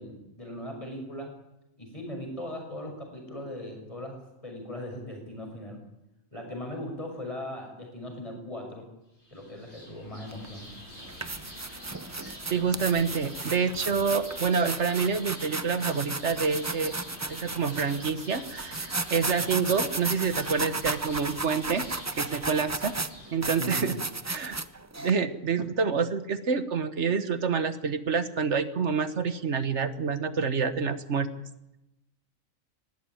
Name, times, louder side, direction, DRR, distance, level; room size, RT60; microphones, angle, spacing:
voice 1, 0.0-1.3 1.8-5.8 6.3-8.9 9.3-10.7 23.6-23.9, left 1 dB, 25° left, 2 dB, 6.5 m, -39 dB
sound 1, 9.2-24.3, left 1 dB, 50° left, 8.2 m, -46 dB
sound 2, 10.3-10.5 11.0-25.1, right 3 dB, 25° right, 0.3 m, -34 dB
voice 2, 12.5-16.9 17.3-22.9 23.3-24.0 24.3-24.6 25.0-31.3, right 5 dB, 55° right, 11 dB, 1.5 m, -27 dB
20.0 x 16.0 x 9.1 m, 0.91 s
omnidirectional pair, 1.4 m